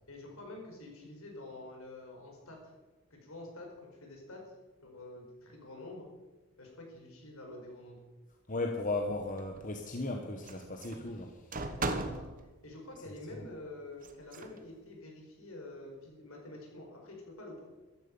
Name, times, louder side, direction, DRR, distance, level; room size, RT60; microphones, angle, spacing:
voice 1, 0.1-2.7 3.1-4.5 4.8-6.1 6.6-8.0 11.8-12.2 12.6-17.7, left 2 dB, 70° left, 0 dB, 4.9 m, -48 dB
voice 2, 8.5-11.5, left 2 dB, 35° left, 3 dB, 1.2 m, -36 dB
sound 1, 9.1-9.7 10.4-12.4 14.0-14.6, right 2 dB, 40° right, 1.3 m, -38 dB
14.0 x 13.0 x 5.5 m, 1.2 s
head